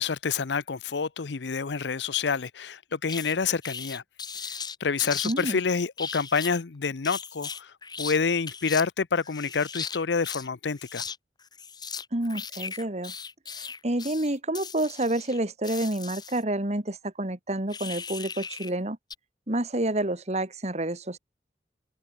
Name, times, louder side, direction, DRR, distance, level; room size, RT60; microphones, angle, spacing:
voice 1, 0.0-4.0 4.8-11.0, left 5 dB, 85° left, 0.7 m, -28 dB
sound 1, 3.1-3.3 3.6-5.6 6.0-6.6 7.0-8.2 8.5-8.8 9.2-10.5 10.7-11.2 11.4-16.4 17.7-18.7 19.1-19.2, left 6 dB, 25° left, 3.4 m, -38 dB
voice 2, 5.2-5.6 12.1-13.1 13.6-19.0 19.5-21.2, right 1 dB, 40° right, 2.1 m, -29 dB
head